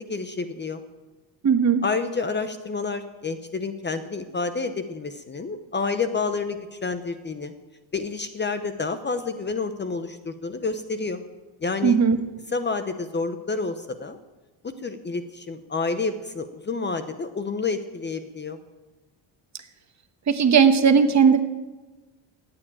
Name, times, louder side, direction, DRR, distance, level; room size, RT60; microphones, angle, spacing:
voice 1, 0.1-0.8 1.8-7.5 7.9-11.2 11.6-12.0 12.5-14.2 14.8-18.6, left 4 dB, 25° left, 10 dB, 0.8 m, -29 dB
voice 2, 1.4-1.8 11.8-12.2 20.3-21.4, right 6 dB, 35° right, 8 dB, 1.2 m, -17 dB
14.5 x 8.9 x 8.9 m, 1.2 s
cardioid pair, 130°, 47 cm